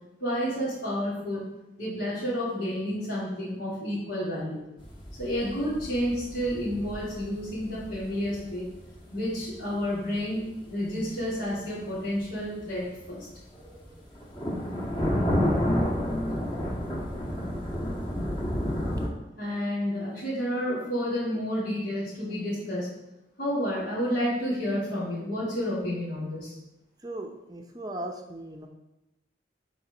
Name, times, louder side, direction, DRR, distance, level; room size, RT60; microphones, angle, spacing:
voice 1, 0.2-1.4 1.8-4.6 5.2-8.6 9.1-13.3 19.4-22.9 23.4-26.5, equal, 80° left, -13 dB, 3.0 m, -30 dB
sound 1, 4.8-19.1, equal, 25° left, 1.3 m, -31 dB
voice 2, 27.0-28.7, right 1 dB, 20° right, 3 dB, 0.6 m, -37 dB
7.2 x 4.5 x 5.0 m, 0.94 s
head